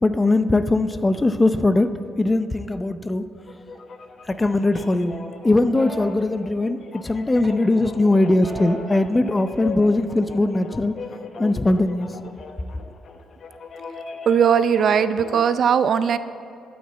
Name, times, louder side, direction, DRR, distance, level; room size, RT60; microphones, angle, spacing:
voice 1, 0.0-1.9 2.2-3.3 4.2-5.1 5.4-10.9 11.4-12.2, left 2 dB, 20° left, 11 dB, 0.6 m, -20 dB
sound 1, 3.4-15.5, left 4 dB, 55° left, 0.9 m, -39 dB
sound 2, 3.7-4.3 4.7-7.0 7.4-9.0, right 2 dB, 30° right, 2.0 m, -39 dB
voice 2, 14.3-16.2, right 7 dB, 60° right, 13 dB, 0.4 m, -18 dB
12.5 x 6.4 x 8.0 m, 2.6 s
cardioid pair, 90°, 0 cm